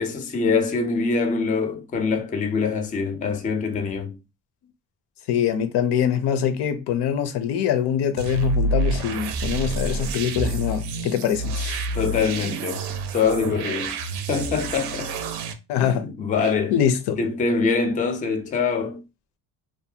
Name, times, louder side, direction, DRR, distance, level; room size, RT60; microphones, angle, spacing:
voice 1, 0.0-4.2 11.6-14.0 14.3-15.1 15.8-16.8 17.2-19.0, left 5 dB, 20° left, 0.3 m, -24 dB
voice 2, 5.3-11.5 15.7-16.1 16.7-17.2, left 9 dB, 85° left, 0.6 m, -23 dB
sound 1, 8.2-15.5, right 2 dB, 85° right, 0.5 m, -28 dB
2.6 x 2.2 x 2.7 m
cardioid pair, 140°, 39 cm